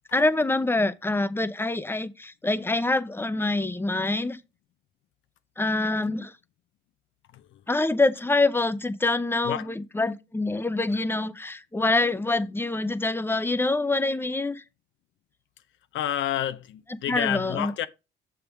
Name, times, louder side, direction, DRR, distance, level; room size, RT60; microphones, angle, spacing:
voice 1, 0.1-4.4 5.6-6.3 7.7-14.6 17.1-17.7, left 2 dB, 10° left, 0.6 m, -25 dB
voice 2, 15.9-17.9, left 11 dB, 75° left, 0.6 m, -29 dB
6.6 x 3.6 x 5.9 m
cardioid pair, 90°, 20 cm